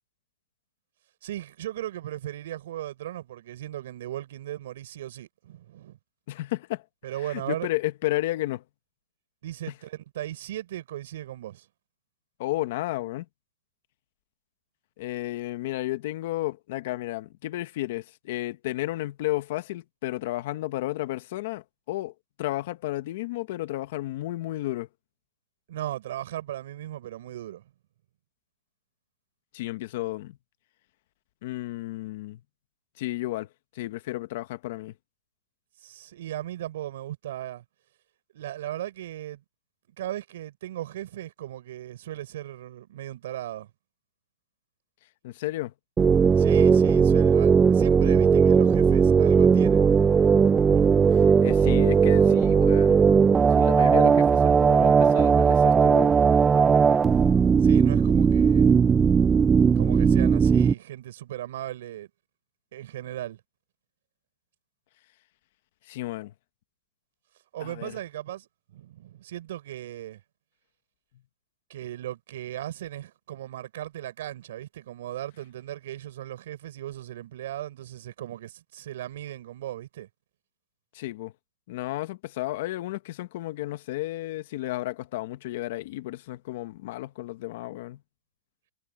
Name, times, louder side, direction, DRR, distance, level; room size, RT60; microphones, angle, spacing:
voice 1, 1.2-6.0 7.0-7.7 9.4-11.6 25.7-27.6 35.8-37.6 38.3-39.4 40.0-43.7 46.3-49.9 50.7-50.9 57.6-58.7 59.7-62.1 62.7-63.4 67.5-70.2 71.7-80.1, right 13 dB, 70° right, 5.9 m, -37 dB
voice 2, 6.3-6.8 7.2-8.6 12.4-13.2 15.0-22.1 22.4-24.9 29.5-30.4 31.4-32.4 33.0-33.5 33.7-34.9 45.2-45.7 51.1-53.0 53.3-56.1 65.9-66.3 67.6-67.9 80.9-81.3 81.7-88.0, left 17 dB, 55° left, 1.0 m, -32 dB
sound 1, 46.0-60.7, right 6 dB, 15° right, 0.4 m, -18 dB
supercardioid pair, 160°, 0 cm